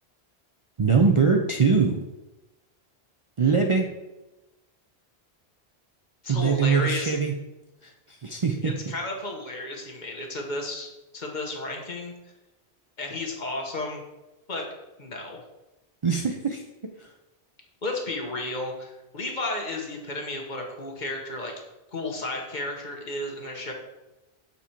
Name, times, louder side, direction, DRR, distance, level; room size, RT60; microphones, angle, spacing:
voice 1, 0.8-2.0 3.4-3.8 6.3-7.3 7.8-8.7 16.0-16.6 17.0-17.1, right 5 dB, 40° right, 2 dB, 0.5 m, -22 dB
voice 2, 6.2-7.1 8.6-12.1 13.0-14.0 14.5-14.6 15.0-15.4 17.8-21.5 21.9-23.7, left 2 dB, 45° left, 1 dB, 1.2 m, -33 dB
7.1 x 4.2 x 4.4 m, 1.0 s
omnidirectional pair, 1.1 m